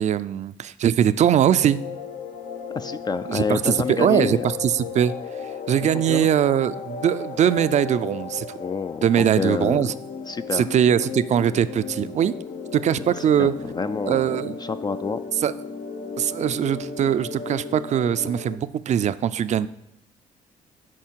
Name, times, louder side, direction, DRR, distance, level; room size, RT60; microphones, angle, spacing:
voice 1, 0.0-1.8 3.3-5.1 5.7-8.6 9.0-9.9 10.5-12.3 12.7-13.5 14.1-14.6 15.4-15.5 16.2-19.7, right 9 dB, 55° right, 14 dB, 0.4 m, -21 dB
sound 1, 1.5-18.6, left 5 dB, 70° left, 0.8 m, -35 dB
voice 2, 2.7-4.5 6.1-6.3 8.6-9.8 10.3-10.6 13.1-14.2 14.6-15.2, left 5 dB, 30° left, 11 dB, 0.3 m, -28 dB
10.5 x 4.2 x 4.5 m, 0.81 s
cardioid pair, 70°, 14 cm